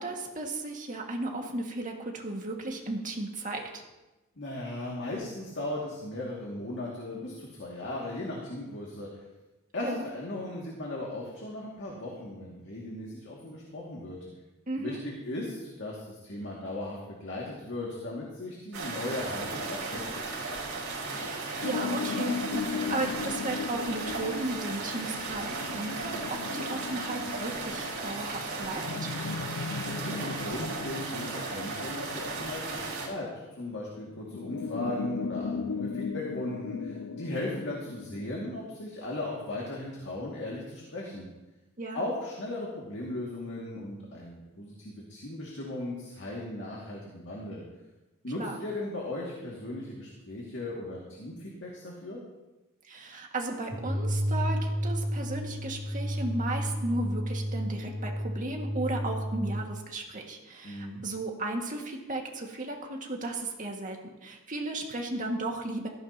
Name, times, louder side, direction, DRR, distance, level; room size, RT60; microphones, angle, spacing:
voice 1, 0.0-3.8 9.8-10.0 14.7-15.0 21.1-29.1 41.8-42.0 48.4-48.6 52.8-65.9, right 2 dB, 40° right, 1 dB, 1.9 m, -35 dB
voice 2, 4.4-9.1 9.7-14.2 14.8-20.1 29.9-41.3 41.9-47.6 48.2-52.2 60.6-61.0, left 1 dB, 60° left, -3 dB, 2.2 m, -37 dB
sound 1, 18.7-33.1, right 3 dB, 70° right, 4.6 m, -36 dB
sound 2, 21.6-33.4 34.2-38.3, left 5 dB, 75° left, 0.4 m, -37 dB
sound 3, 53.7-59.7, equal, 85° right, 2.7 m, -31 dB
16.5 x 15.0 x 2.9 m, 1.1 s
head